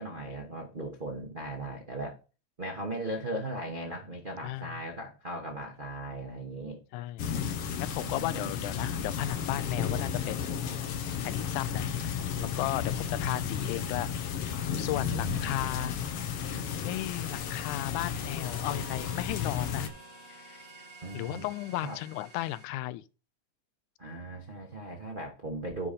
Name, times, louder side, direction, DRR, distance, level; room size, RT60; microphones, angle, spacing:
voice 1, 0.0-2.2 2.6-6.8 8.0-8.5 15.0-15.7 21.0-21.4 21.8-22.0 24.0-25.9, right 1 dB, 80° right, 0.4 m, -38 dB
voice 2, 4.4-4.8 6.9-7.3 7.8-10.7 11.2-14.1 14.8-16.0 16.8-19.9 20.5-20.6 21.1-23.0, left 15 dB, 90° left, 2.0 m, -35 dB
sound 1, 7.2-19.9, left 7 dB, 65° left, 1.7 m, -33 dB
sound 2, 16.7-22.6, right 2 dB, 20° right, 1.8 m, -51 dB
9.7 x 5.0 x 4.2 m
omnidirectional pair, 3.4 m